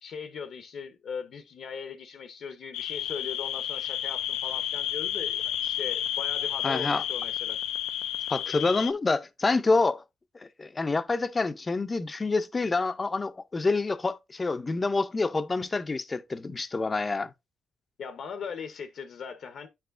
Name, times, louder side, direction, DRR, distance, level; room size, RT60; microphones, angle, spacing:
voice 1, 0.0-7.6 18.0-19.7, left 6 dB, 65° left, 0.7 m, -39 dB
sound 1, 2.7-8.9, left 11 dB, 90° left, 0.3 m, -31 dB
voice 2, 6.6-7.0 8.3-10.0 10.3-17.3, left 3 dB, 25° left, 0.5 m, -27 dB
8.8 x 4.7 x 2.5 m
cardioid pair, 90°, 0 cm